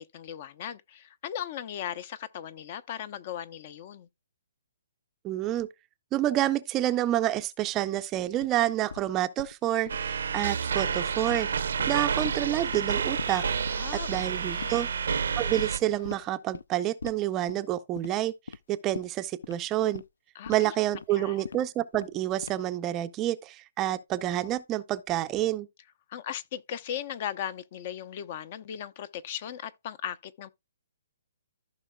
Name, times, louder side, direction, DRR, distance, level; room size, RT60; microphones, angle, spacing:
voice 1, 0.0-4.1 13.7-14.1 14.5-14.9 20.3-20.7 21.1-21.4 26.1-30.5, left 9 dB, 35° left, 0.6 m, -37 dB
voice 2, 5.2-5.7 6.1-13.8 14.1-14.9 15.4-18.3 18.7-20.0 20.5-25.7, right 13 dB, 20° right, 0.5 m, -28 dB
sound 1, 8.4-8.5 8.9-9.0 9.4-9.5 9.9-10.0 10.3-10.5 10.8-10.9 11.3-11.5 11.8-12.4 12.7-12.9 13.2-13.3 13.7-13.8 14.1-14.3 14.6-14.7 15.1-15.2 15.6-15.7 16.0-16.2 16.5-16.7 17.0-17.2 17.5-17.7 18.0-18.1 18.5-18.6 18.9-19.1 19.4-19.6 19.9-20.1 20.5-20.6 20.9-21.1 21.5-21.6 21.9-22.2 22.4-22.7, left 5 dB, 85° left, 0.4 m, -40 dB
sound 2, 9.7-16.3, left 5 dB, 60° left, 3.2 m, -52 dB
sound 3, 9.9-15.8, right 6 dB, 70° right, 0.7 m, -29 dB
14.5 x 5.5 x 2.2 m
hypercardioid pair, 160°, 0 cm